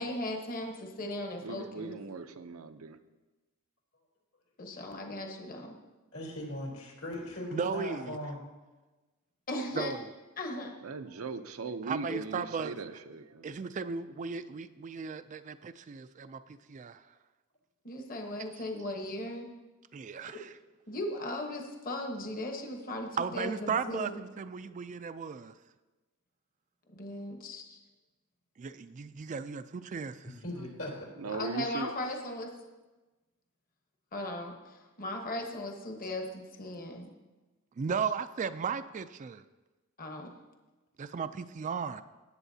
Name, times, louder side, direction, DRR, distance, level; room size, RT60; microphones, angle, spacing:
voice 1, 0.0-2.0 4.6-5.7 9.5-9.9 10.4-10.7 12.1-12.2 17.8-19.5 20.9-24.2 26.9-27.8 31.3-32.5 34.1-37.1 40.0-40.3, left 1 dB, 40° left, 2 dB, 1.1 m, -37 dB
voice 2, 1.4-3.0 10.8-13.5 31.2-31.9, right 4 dB, 75° right, 9 dB, 0.6 m, -39 dB
voice 3, 6.1-8.4 30.4-30.9, left 1 dB, 80° left, -3 dB, 3.6 m, -39 dB
voice 4, 7.5-8.2 9.7-10.1 11.8-12.8 13.4-17.0 18.5-18.7 19.9-20.6 23.2-25.6 28.6-30.3 37.8-39.4 41.0-42.0, right 6 dB, 35° right, 12 dB, 0.3 m, -36 dB
18.0 x 8.1 x 2.8 m, 1.2 s
head